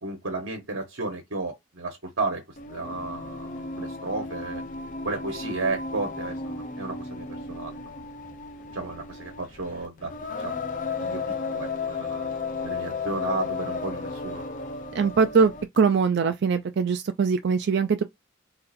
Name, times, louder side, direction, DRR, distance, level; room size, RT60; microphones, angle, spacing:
voice 1, 0.0-4.6 5.0-8.0 8.7-10.1 10.4-12.3 12.6-14.4, right 3 dB, 85° right, 1.2 m, -33 dB
Singing, 2.6-15.8, left 4 dB, 40° left, 0.6 m, -34 dB
voice 2, 14.9-18.0, right 5 dB, 60° right, 0.4 m, -22 dB
3.9 x 2.6 x 4.1 m
head